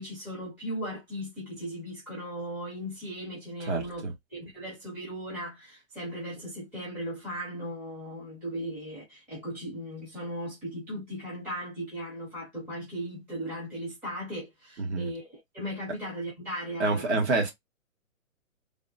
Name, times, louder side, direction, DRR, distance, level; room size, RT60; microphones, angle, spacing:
voice 1, 0.0-4.0 4.3-17.2, equal, 5° right, 0.6 m, -37 dB
voice 2, 3.7-4.1 14.8-15.1 16.8-17.5, right 3 dB, 55° right, 1.4 m, -27 dB
3.5 x 2.2 x 2.4 m
hypercardioid pair, 160°, 41 cm